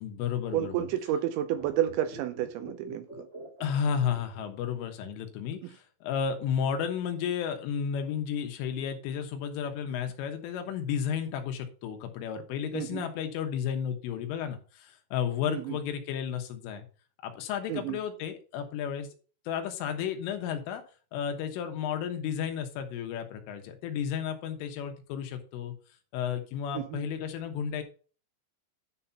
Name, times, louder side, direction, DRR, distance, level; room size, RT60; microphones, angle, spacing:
voice 1, 0.0-0.9 3.6-16.9 17.2-19.1 19.5-20.8 21.1-25.7 26.1-27.8, left 8 dB, 80° left, 3.7 m, -32 dB
voice 2, 0.5-3.1 5.6-5.7 12.7-13.1 15.5-15.8 17.7-18.0 26.7-27.0, right 11 dB, 85° right, 2.8 m, -30 dB
sound 1, 1.5-4.9 5.2-5.3, right 2 dB, 20° right, 2.5 m, -46 dB
11.0 x 4.3 x 5.6 m
omnidirectional pair, 5.7 m